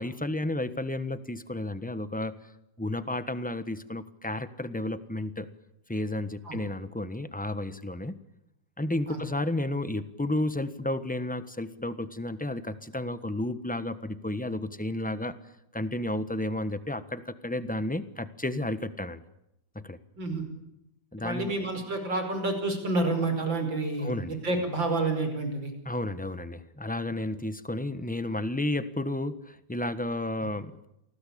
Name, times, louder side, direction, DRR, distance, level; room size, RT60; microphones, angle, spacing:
voice 1, 0.0-2.3 2.8-5.5 5.9-8.2 8.8-15.4 15.7-19.2 19.7-20.0 21.1-21.5 24.0-24.4 25.8-30.7, left 1 dB, 5° left, 12 dB, 1.0 m, -32 dB
voice 2, 21.2-25.7, right 2 dB, 80° right, 6 dB, 6.1 m, -29 dB
29.0 x 19.5 x 8.7 m, 0.86 s
omnidirectional pair, 2.0 m